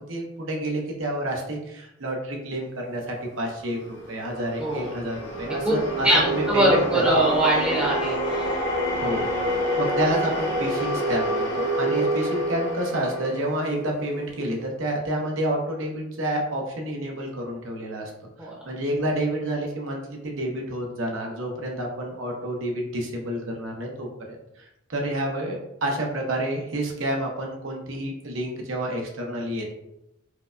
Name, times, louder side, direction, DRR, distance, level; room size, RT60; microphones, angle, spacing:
voice 1, 0.0-7.2 8.9-18.1 18.4-29.7, right 1 dB, 90° right, 0 dB, 0.8 m, -29 dB
sound 1, 3.8-14.2, equal, 65° left, 1.0 m, -27 dB
voice 2, 4.6-5.0 5.6-5.7 6.0-8.5 11.9-12.1 18.4-18.5, right 1 dB, 5° right, -5 dB, 0.6 m, -22 dB
4.6 x 2.1 x 2.4 m, 0.84 s
head